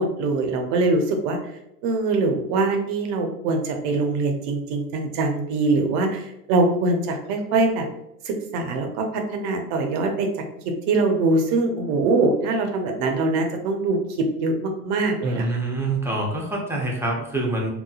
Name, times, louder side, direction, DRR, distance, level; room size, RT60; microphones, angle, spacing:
voice 1, 0.0-1.4 1.8-7.9 8.2-10.3 10.9-14.0 14.4-15.5, right 3 dB, 55° right, 3 dB, 0.7 m, -23 dB
voice 2, 15.2-17.7, right 2 dB, 5° right, -2 dB, 0.6 m, -26 dB
3.0 x 2.2 x 2.3 m, 0.81 s
hypercardioid pair, 85°, 45 cm